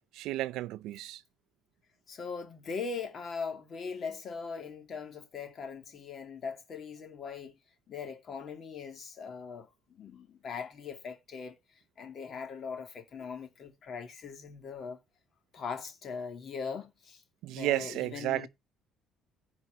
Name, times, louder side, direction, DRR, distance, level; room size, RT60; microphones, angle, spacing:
voice 1, 0.2-1.2 17.4-18.5, right 15 dB, 85° right, 0.8 m, -32 dB
voice 2, 2.1-7.6 7.9-11.6 12.0-15.0 15.5-17.2 17.5-18.5, left 5 dB, 35° left, 2.9 m, -40 dB
15.0 x 5.2 x 5.1 m
cardioid pair, 175°, 0 cm